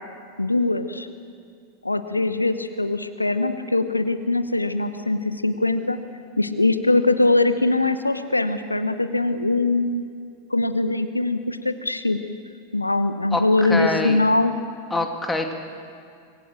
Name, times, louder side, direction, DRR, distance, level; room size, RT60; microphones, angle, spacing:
voice 1, 0.4-1.1 1.8-6.0 6.4-10.1 10.5-12.2 12.7-14.6, left 2 dB, 85° left, 11 dB, 1.0 m, -22 dB
voice 2, 13.3-14.2 14.9-15.5, left 2 dB, 10° left, 4 dB, 2.5 m, -25 dB
25.0 x 20.0 x 7.6 m, 2.2 s
figure-of-eight pair, 90°, 0 cm